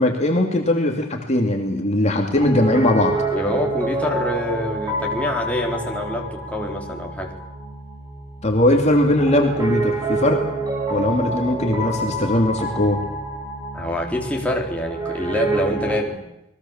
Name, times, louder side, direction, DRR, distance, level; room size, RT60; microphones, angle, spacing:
voice 1, 0.0-3.1 8.4-10.4 10.9-13.0, left 1 dB, 35° left, 2 dB, 2.8 m, -19 dB
Piano, 2.3-16.0, right 2 dB, 20° right, 6.6 m, -27 dB
voice 2, 3.3-7.3 13.7-16.2, left 1 dB, 5° left, 0 dB, 4.0 m, -26 dB
29.0 x 21.0 x 7.4 m, 0.88 s
head